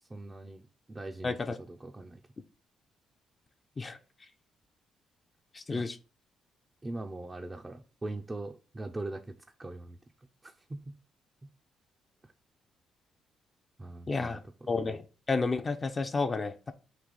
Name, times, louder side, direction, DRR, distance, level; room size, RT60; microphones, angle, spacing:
voice 1, 0.0-2.2 5.7-5.9 6.8-11.0 11.4-11.5 13.8-14.7, right 2 dB, 20° right, 0.5 m, -42 dB
voice 2, 1.2-1.6 3.8-4.0 5.5-6.0 14.1-14.4 14.7-15.0 15.3-16.7, left 3 dB, 30° left, 0.5 m, -31 dB
3.9 x 2.8 x 4.7 m
cardioid pair, 90°, 0 cm